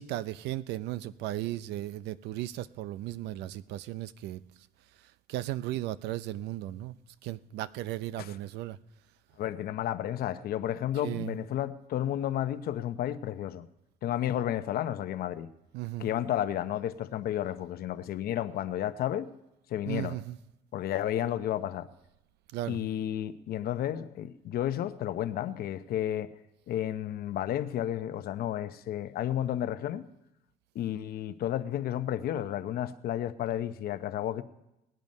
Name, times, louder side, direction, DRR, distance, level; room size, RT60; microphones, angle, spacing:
voice 1, 0.0-4.4 5.3-6.9 7.2-8.8 11.0-11.4 15.7-16.1 19.9-20.4 22.5-22.8, right 14 dB, 85° right, 17 dB, 0.5 m, -36 dB
voice 2, 9.4-13.7 14.0-15.5 16.0-19.3 19.7-20.2 20.7-21.9 22.7-26.3 26.7-30.0 30.7-34.4, left 11 dB, 65° left, 11 dB, 0.8 m, -32 dB
19.5 x 9.1 x 5.4 m, 0.90 s
cardioid pair, 110°, 17 cm